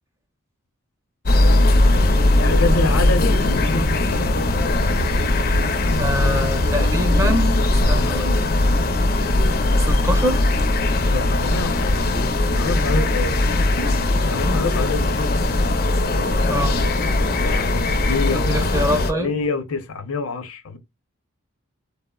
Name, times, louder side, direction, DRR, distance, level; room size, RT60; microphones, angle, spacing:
sound 1, 1.3-19.1, left 2 dB, 45° left, 0.4 m, -19 dB
voice 1, 1.8-4.3 11.0-12.2 12.4-13.6 14.2-15.4 17.4-18.7 19.2-20.8, left 3 dB, 85° left, 0.7 m, -27 dB
voice 2, 6.0-7.5 7.9-8.4 9.8-10.4 16.5-16.8 18.3-19.3, equal, 15° right, 0.5 m, -24 dB
3.1 x 2.0 x 2.2 m
head